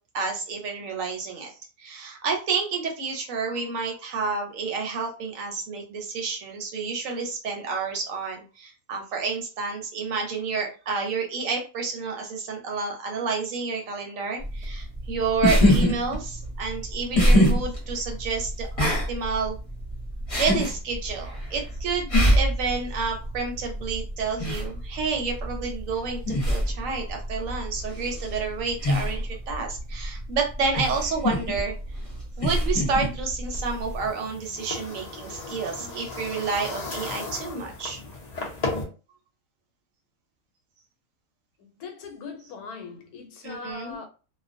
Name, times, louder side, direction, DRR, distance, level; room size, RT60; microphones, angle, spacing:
voice 1, 0.1-19.6 20.4-31.8 32.4-38.0 43.4-44.0, right 4 dB, 70° right, 0.9 m, -30 dB
sound 1, 14.4-34.1, equal, 25° left, 0.8 m, -25 dB
sound 2, 33.5-38.8, left 3 dB, 50° left, 0.4 m, -35 dB
voice 2, 41.6-44.1, left 5 dB, 85° left, 1.1 m, -40 dB
2.4 x 2.1 x 2.5 m
omnidirectional pair, 1.5 m